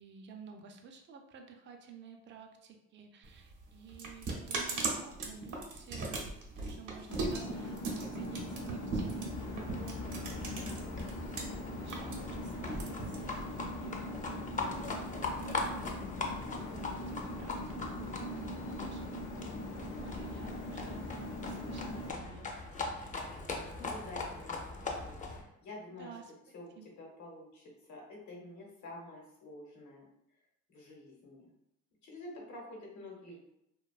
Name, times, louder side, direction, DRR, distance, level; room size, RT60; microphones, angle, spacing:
voice 1, 0.0-11.1 11.6-14.4 16.5-19.2 19.8-21.1 21.4-22.5 26.0-26.3 26.8-26.9, right 6 dB, 40° right, 3 dB, 0.4 m, -52 dB
sound 1, 3.2-11.4 11.7-13.7, right 3 dB, 75° right, 0.7 m, -38 dB
sound 2, 7.1-22.1, left 1 dB, 90° left, 0.6 m, -42 dB
Livestock farm animals working animals, 9.3-25.4, left 3 dB, 25° left, 0.4 m, -41 dB
voice 2, 23.8-24.6 24.8-26.1 26.5-30.0 30.7-31.5 32.0-33.4, left 1 dB, 70° left, -2 dB, 0.9 m, -48 dB
2.5 x 2.2 x 2.3 m, 0.81 s
cardioid pair, 90°, 30 cm